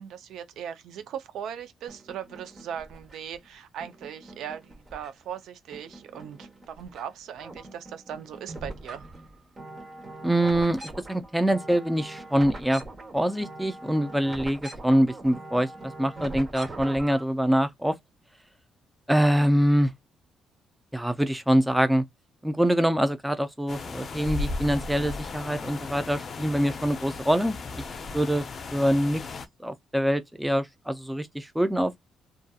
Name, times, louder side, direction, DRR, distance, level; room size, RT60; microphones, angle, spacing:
voice 1, 0.0-9.0, right 9 dB, 80° right, 0.4 m, -39 dB
sound 1, 1.9-3.4 3.8-5.4 5.7-7.0 7.3-17.2, right 2 dB, 30° right, 1.0 m, -42 dB
voice 2, 10.2-12.8 13.1-15.7 16.0-18.0 19.1-19.9 20.9-22.0 22.4-27.8 28.1-28.4 28.7-29.2 29.6-32.0, equal, 5° right, 0.5 m, -24 dB
sound 2, 23.7-29.5, left 3 dB, 45° left, 0.5 m, -36 dB
2.6 x 2.4 x 2.3 m
cardioid pair, 90°, 0 cm